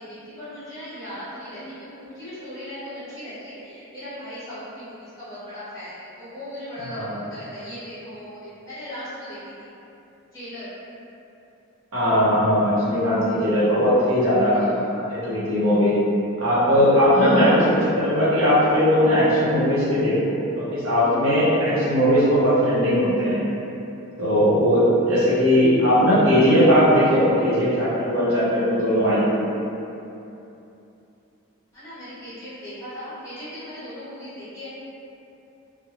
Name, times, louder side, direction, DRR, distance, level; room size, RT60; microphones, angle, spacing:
voice 1, 0.0-9.7 10.3-10.7 14.5-14.8 17.1-17.5 31.7-34.7, equal, 15° left, -15 dB, 1.1 m, -38 dB
voice 2, 11.9-15.9 16.4-23.5 24.2-29.4, equal, 70° right, -10 dB, 0.8 m, -19 dB
2.9 x 2.1 x 2.4 m, 2.9 s
head